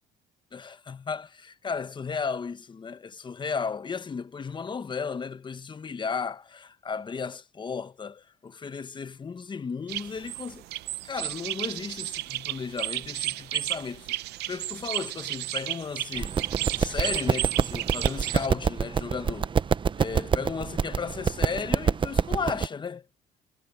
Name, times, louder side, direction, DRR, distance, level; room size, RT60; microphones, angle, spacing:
voice 1, 0.5-10.6 11.0-14.1 14.5-16.4 16.8-19.5 20.0-23.1, left 5 dB, 25° left, 1.0 m, -34 dB
sound 1, 9.9-18.5, right 17 dB, 80° right, 0.7 m, -33 dB
sound 2, 16.2-22.7, right 6 dB, 30° right, 0.7 m, -27 dB
cardioid pair, 110°, 17 cm